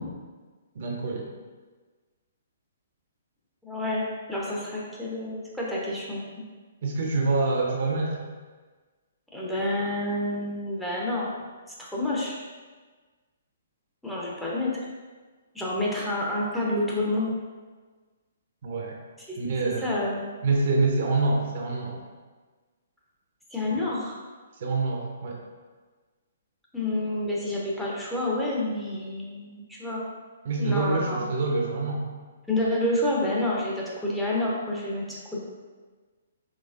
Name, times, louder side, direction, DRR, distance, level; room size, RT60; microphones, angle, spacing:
voice 1, 0.7-1.3 6.8-8.2 18.6-19.0 19.4-20.0 20.4-22.0 24.6-25.4 30.4-32.1, right 3 dB, 45° right, 0 dB, 0.6 m, -26 dB
voice 2, 3.6-6.2 9.3-11.3 11.8-12.4 14.0-14.7 15.5-17.3 19.3-19.4 19.8-20.4 23.5-24.2 26.7-30.0 30.6-31.2 32.5-35.4, left 1 dB, 5° left, -6 dB, 0.6 m, -28 dB
3.9 x 3.0 x 2.4 m, 1.4 s
figure-of-eight pair, 125°, 0 cm